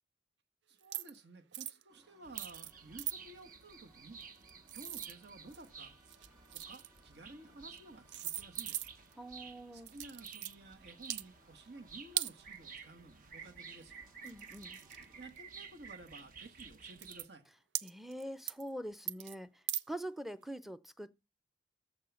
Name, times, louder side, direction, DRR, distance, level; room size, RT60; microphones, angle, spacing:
voice 1, 0.7-4.2 4.7-5.9 6.5-8.9 9.7-14.0 15.2-17.4, right 2 dB, 70° right, 1.5 m, -54 dB
sound 1, 0.8-1.2 1.5-1.8 2.4-2.7 3.0-3.1 4.2-5.7 6.0-7.0 7.7-7.8 8.1-9.1 9.9-10.5 11.0-11.2 12.2-12.3 13.8-13.9 14.2-15.4 16.1-16.2 16.6-16.7 17.0-17.3 17.7-18.2 18.5-18.7 19.1-19.3 19.7-19.8, right 13 dB, 90° right, 0.5 m, -39 dB
sound 2, 1.9-15.3, right 1 dB, 20° right, 2.9 m, -69 dB
sound 3, 2.2-17.3, right 5 dB, 50° right, 1.2 m, -53 dB
voice 2, 9.2-9.9 14.2-14.8 17.8-21.1, right 1 dB, ahead, 0.6 m, -44 dB
14.0 x 4.8 x 7.0 m
head